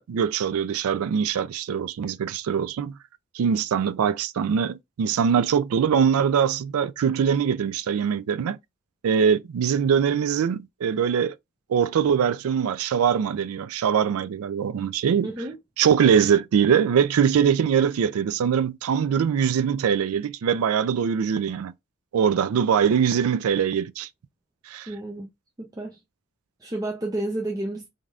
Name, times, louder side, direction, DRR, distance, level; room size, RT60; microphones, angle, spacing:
voice 1, 0.0-3.0 3.3-8.6 9.0-11.4 11.7-15.3 15.8-21.7 22.1-24.1 24.7-24.9, right 7 dB, 90° right, 0.3 m, -22 dB
voice 2, 15.2-15.6 24.9-25.3 25.6-26.0 26.6-27.9, right 1 dB, 15° right, 0.4 m, -31 dB
3.3 x 2.6 x 2.3 m
head